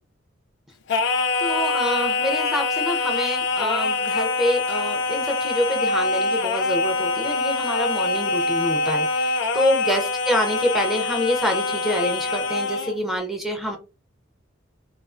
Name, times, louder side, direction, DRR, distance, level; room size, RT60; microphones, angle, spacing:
Singing, 0.9-13.0, left 3 dB, 60° left, 0.4 m, -24 dB
voice 1, 1.4-13.8, equal, ahead, 2 dB, 0.4 m, -26 dB
2.4 x 2.3 x 2.4 m, 0.29 s
head